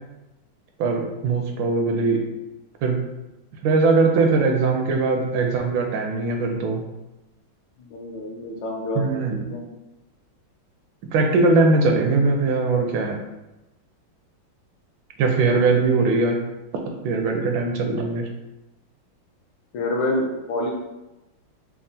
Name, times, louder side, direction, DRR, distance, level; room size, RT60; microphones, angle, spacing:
voice 1, 0.8-2.2 2.8-3.0 3.6-6.8 9.0-9.4 11.1-13.2 15.2-16.4 17.0-18.3, right 3 dB, 75° right, 2 dB, 1.2 m, -20 dB
voice 2, 7.8-9.0 9.3-9.7 19.7-20.7, left 1 dB, 70° left, -1 dB, 1.2 m, -27 dB
5.4 x 2.3 x 2.6 m, 0.99 s
omnidirectional pair, 2.3 m